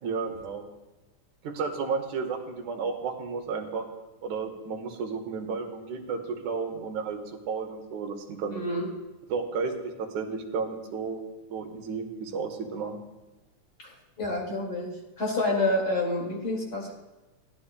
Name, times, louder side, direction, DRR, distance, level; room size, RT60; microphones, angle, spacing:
voice 1, 0.0-0.6 1.4-3.9 4.2-7.2 7.5-8.6 9.3-11.2 11.5-13.0, right 5 dB, 75° right, 3 dB, 2.5 m, -32 dB
voice 2, 8.5-8.9 13.8-14.9 15.2-16.9, left 2 dB, 35° left, -2 dB, 2.3 m, -28 dB
17.0 x 11.0 x 2.2 m, 1.1 s
omnidirectional pair, 3.5 m